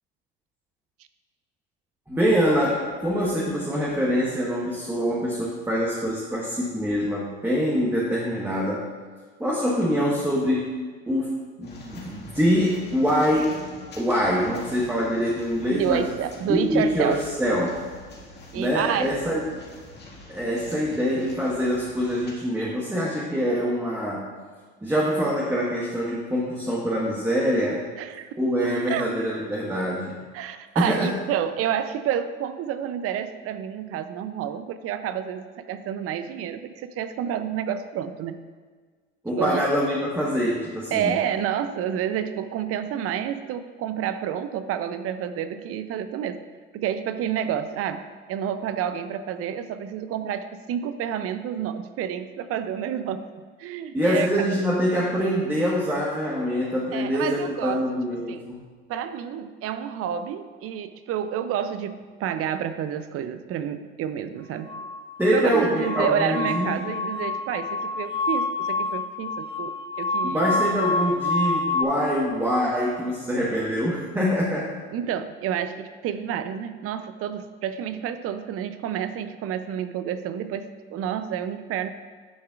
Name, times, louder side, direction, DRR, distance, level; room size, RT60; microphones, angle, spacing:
voice 1, 2.1-8.8 9.4-10.7 11.1-13.6 14.0-16.1 16.5-17.8 18.5-19.6 20.3-24.3 24.8-27.8 28.4-30.2 30.7-31.1 39.2-41.2 53.9-58.6 65.2-66.8 70.2-74.7, equal, 5° right, -5 dB, 1.3 m, -24 dB
sound 1, 11.6-22.3, left 2 dB, 35° left, 1.9 m, -45 dB
voice 2, 15.7-17.2 18.5-19.1 28.0-28.3 28.9-29.1 30.3-38.4 39.4-39.6 40.9-46.4 46.7-53.3 53.6-54.6 56.9-57.8 58.3-58.5 58.9-64.8 65.3-69.7 70.0-70.5 74.9-81.9, right 9 dB, 50° right, 11 dB, 0.6 m, -29 dB
sound 2, 64.7-71.8, left 3 dB, 15° left, 0.5 m, -28 dB
10.5 x 5.5 x 2.5 m, 1.5 s
hypercardioid pair, 80°, 30 cm